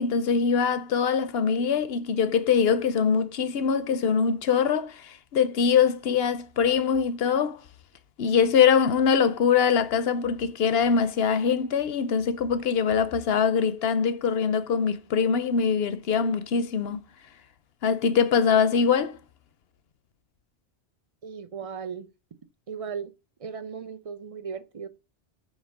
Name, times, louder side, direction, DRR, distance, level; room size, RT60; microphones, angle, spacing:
voice 1, 0.0-7.6 8.2-17.0 17.8-19.2, left 6 dB, 65° left, 0.9 m, -23 dB
voice 2, 21.2-22.1 22.7-23.1 23.4-24.9, right 6 dB, 40° right, 0.6 m, -36 dB
8.1 x 3.1 x 5.9 m
omnidirectional pair, 1.1 m